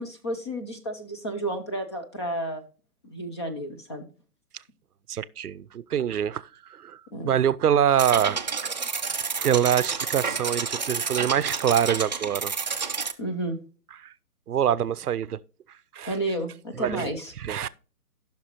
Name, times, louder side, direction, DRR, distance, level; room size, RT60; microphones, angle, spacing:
voice 1, 0.0-2.6 3.0-4.0 7.1-7.3 13.2-13.6 16.1-17.3, right 1 dB, 20° left, 0.6 m, -31 dB
voice 2, 5.1-6.5 6.8-7.0 7.2-8.7 9.1-12.5 14.5-15.4 15.9-16.1 16.8-17.1 17.4-17.7, right 9 dB, 75° right, 0.6 m, -25 dB
sound 1, 8.0-13.1, right 5 dB, 30° right, 0.4 m, -30 dB
13.5 x 6.1 x 2.9 m
hypercardioid pair, 145°, 46 cm